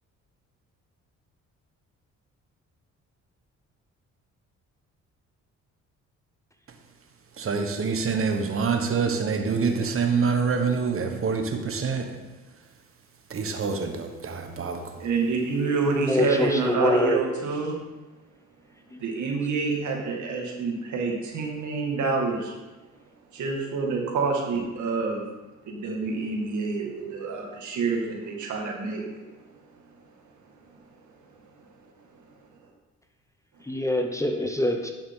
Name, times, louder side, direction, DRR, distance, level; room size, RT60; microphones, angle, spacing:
voice 1, 7.4-12.1 13.3-14.9, right 5 dB, 45° right, 5 dB, 1.3 m, -26 dB
voice 2, 15.0-17.7 19.0-22.6 23.3-25.2 25.6-29.1, right 4 dB, 75° right, 0 dB, 2.2 m, -27 dB
voice 3, 16.0-17.2 18.9-19.0 33.7-34.9, left 1 dB, 10° left, 5 dB, 0.9 m, -24 dB
11.0 x 7.1 x 3.8 m, 1.1 s
cardioid pair, 90°, 30 cm